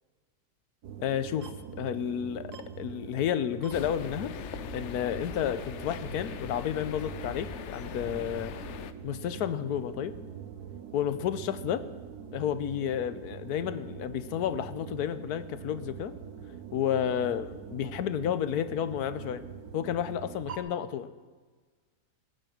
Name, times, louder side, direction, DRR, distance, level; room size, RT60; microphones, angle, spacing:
sound 1, 0.8-20.6, right 8 dB, 90° right, 1.5 m, -44 dB
voice 1, 1.0-1.5 1.8-4.3 4.7-8.5 9.0-10.1 10.9-11.9 12.3-16.1 16.7-19.4 19.7-21.1, left 9 dB, 85° left, 13 dB, 1.3 m, -31 dB
sound 2, 3.7-8.9, left 10 dB, 60° left, 0.8 m, -41 dB
17.5 x 9.1 x 6.4 m, 1.4 s
omnidirectional pair, 1.6 m